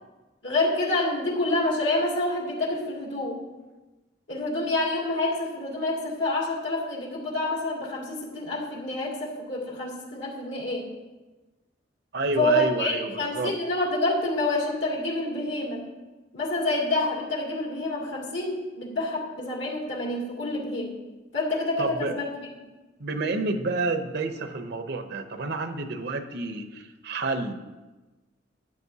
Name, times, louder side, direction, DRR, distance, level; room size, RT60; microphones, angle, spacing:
voice 1, 0.4-3.4 4.3-10.9 12.4-15.8 16.3-20.9 21.3-22.2, left 2 dB, 80° left, -4 dB, 2.5 m, -27 dB
voice 2, 12.1-13.5 21.8-22.2 23.0-27.5, right 3 dB, 65° right, 8 dB, 0.7 m, -29 dB
12.0 x 8.8 x 2.8 m, 1.2 s
head